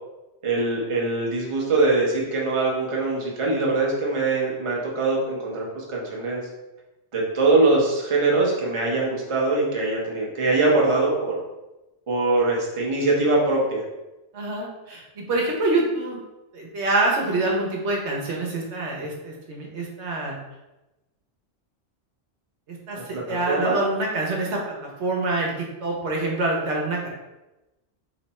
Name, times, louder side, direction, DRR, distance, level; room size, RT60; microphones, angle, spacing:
voice 1, 0.4-6.4 7.1-11.3 12.1-13.8 22.9-23.7, right 2 dB, 30° right, -3 dB, 0.8 m, -22 dB
voice 2, 14.3-16.2 16.5-20.4 22.7-27.1, right 2 dB, 75° right, -1 dB, 1.1 m, -26 dB
3.2 x 3.0 x 4.1 m, 1.0 s
omnidirectional pair, 1.2 m